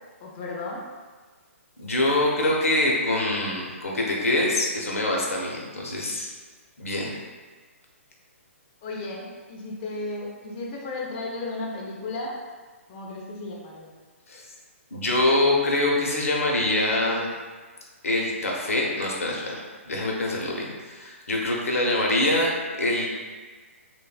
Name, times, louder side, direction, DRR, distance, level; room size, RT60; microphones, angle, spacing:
voice 1, 0.2-0.8 8.8-12.3 12.9-14.0, left 2 dB, 35° left, -3 dB, 0.5 m, -34 dB
voice 2, 1.8-6.3 6.8-7.1 14.3-14.4 14.9-17.3 18.0-23.1, left 1 dB, 80° left, -2 dB, 0.6 m, -24 dB
3.1 x 2.0 x 2.4 m, 1.4 s
hypercardioid pair, 135°, 7 cm